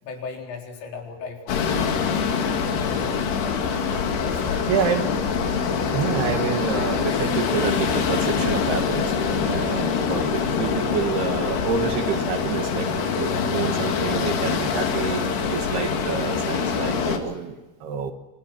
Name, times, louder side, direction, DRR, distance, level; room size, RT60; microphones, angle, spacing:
voice 1, 0.0-3.2 4.2-4.7, left 5 dB, 80° left, 1 dB, 6.8 m, -37 dB
sound 1, 1.5-17.2, left 6 dB, 60° left, 4.1 m, -25 dB
sound 2, 4.7-17.2, left 3 dB, 25° left, 2.5 m, -36 dB
voice 2, 4.7-5.1 5.9-18.1, right 6 dB, 65° right, 7 dB, 3.1 m, -28 dB
29.0 x 26.5 x 5.9 m, 1.1 s
omnidirectional pair, 5.7 m